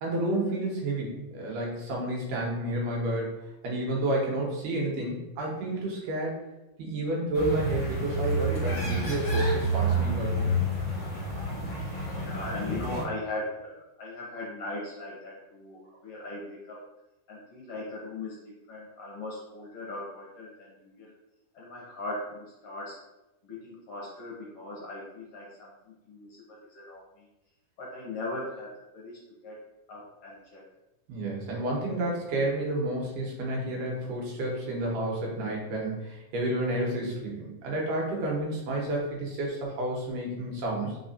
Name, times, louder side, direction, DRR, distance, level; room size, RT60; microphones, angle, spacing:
voice 1, 0.0-3.3 3.6-6.4 6.8-10.5 31.1-41.0, right 1 dB, 90° right, -2 dB, 2.6 m, -30 dB
sound 1, 7.3-13.0, right 1 dB, 35° left, 1.5 m, -29 dB
voice 2, 12.2-16.8 17.3-21.1 21.5-23.0 23.4-27.3 27.8-29.6 29.9-30.6, left 2 dB, 65° left, -4 dB, 1.6 m, -39 dB
4.8 x 4.0 x 2.6 m, 0.98 s
omnidirectional pair, 3.7 m